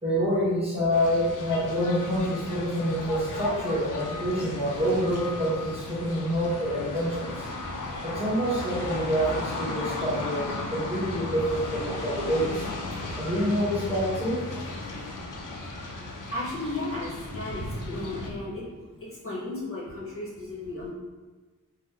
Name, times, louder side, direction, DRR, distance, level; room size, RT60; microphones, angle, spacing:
voice 1, 0.0-7.5 8.0-12.7 13.2-14.4, equal, 15° right, -9 dB, 1.2 m, -27 dB
sound 1, 0.9-18.3, left 2 dB, 70° left, 0.5 m, -35 dB
voice 2, 16.3-20.9, left 2 dB, 40° left, -9 dB, 1.2 m, -34 dB
3.0 x 2.2 x 3.5 m, 1.3 s
wide cardioid pair, 105°, 33 cm